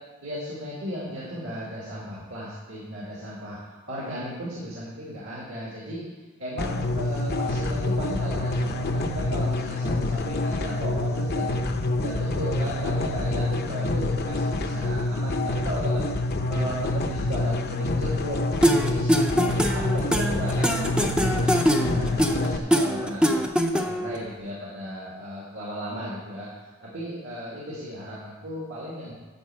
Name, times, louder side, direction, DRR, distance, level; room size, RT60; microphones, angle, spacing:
voice 1, 0.2-6.1 6.4-11.6 12.0-16.0 16.5-29.1, equal, 65° right, -6 dB, 2.2 m, -35 dB
sound 1, 6.6-22.6, left 2 dB, 50° left, 0.7 m, -27 dB
sound 2, 18.6-24.2, equal, 5° right, 0.5 m, -23 dB
12.0 x 4.5 x 7.5 m, 1.3 s
head